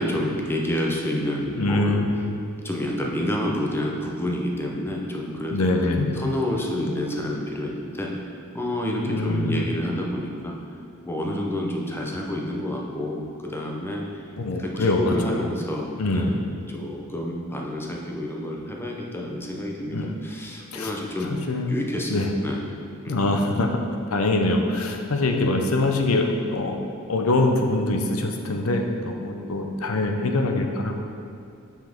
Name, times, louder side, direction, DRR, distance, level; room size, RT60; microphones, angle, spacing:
voice 1, 0.0-2.0 2.6-5.6 6.1-10.6 11.0-14.2 14.5-16.4 16.7-21.4 21.7-22.7 23.0-23.2, left 1 dB, 10° left, -1 dB, 0.7 m, -29 dB
voice 2, 1.6-2.3 5.5-6.2 9.0-9.7 14.4-15.4 16.0-16.3 19.9-20.2 20.7-20.9 21.5-21.8 22.1-22.3 23.1-23.7 24.1-26.8 27.1-30.9, left 2 dB, 80° left, 3 dB, 0.7 m, -23 dB
5.8 x 5.7 x 5.1 m, 2.5 s
head